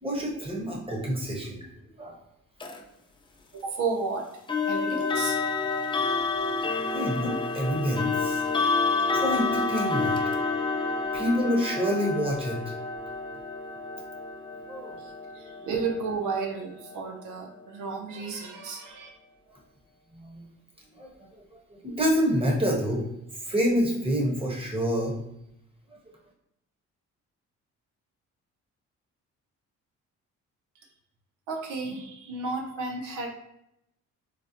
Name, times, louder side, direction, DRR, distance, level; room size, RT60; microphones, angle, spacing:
voice 1, 0.0-2.2 6.9-8.4 9.1-10.2 11.1-12.6 14.7-15.0 20.1-20.5 20.9-21.1 21.5-23.1 23.4-25.1 25.9-26.0, equal, 20° right, -2 dB, 1.0 m, -27 dB
sound 1, 2.6-2.8 4.5-17.3, left 4 dB, 15° left, 0.4 m, -29 dB
voice 2, 3.5-4.3 4.7-5.4 15.0-19.1 31.5-33.3, right 4 dB, 85° right, 2 dB, 0.6 m, -32 dB
4.0 x 2.0 x 2.7 m, 0.79 s
cardioid pair, 90°, 30 cm